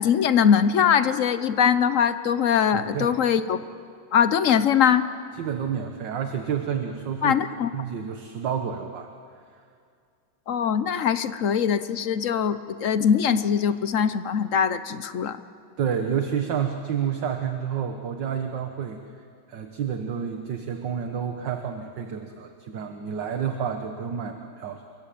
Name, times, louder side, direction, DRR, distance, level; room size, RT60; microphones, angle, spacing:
voice 1, 0.0-3.6 4.1-5.1 7.2-7.7 10.5-15.4, left 8 dB, 60° left, 12 dB, 0.8 m, -22 dB
voice 2, 2.7-3.1 5.4-7.4 7.7-9.1 15.8-19.0 19.5-24.8, right 8 dB, 65° right, 5 dB, 1.9 m, -29 dB
28.5 x 23.5 x 8.6 m, 2.3 s
omnidirectional pair, 2.2 m